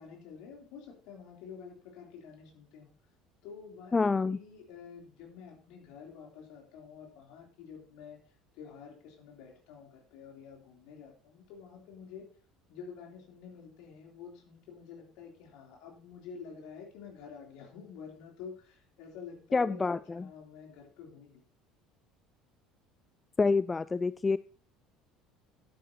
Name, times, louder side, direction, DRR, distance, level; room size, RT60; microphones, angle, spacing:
voice 1, 0.0-2.9 3.4-8.2 8.5-12.3 12.7-21.4, left 6 dB, 55° left, 1 dB, 3.2 m, -49 dB
voice 2, 3.9-4.4 19.5-20.3 23.4-24.4, left 4 dB, 20° left, 17 dB, 0.3 m, -27 dB
11.0 x 9.3 x 2.9 m, 0.40 s
figure-of-eight pair, 65°, 0 cm